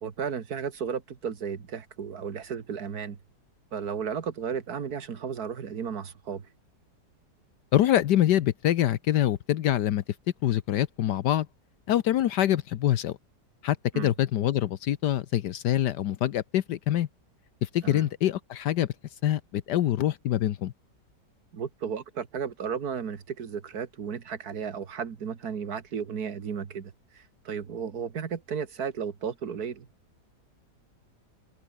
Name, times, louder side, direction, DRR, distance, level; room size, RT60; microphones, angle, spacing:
voice 1, 0.0-3.2 3.7-6.5 13.9-14.1 17.8-18.1 21.5-29.9, right 7 dB, 60° right, 2.1 m, -34 dB
voice 2, 7.7-10.0 10.4-11.5 11.9-13.2 13.6-17.1 17.6-18.9 19.2-20.7, left 12 dB, 75° left, 1.4 m, -25 dB
omnidirectional pair, 1.8 m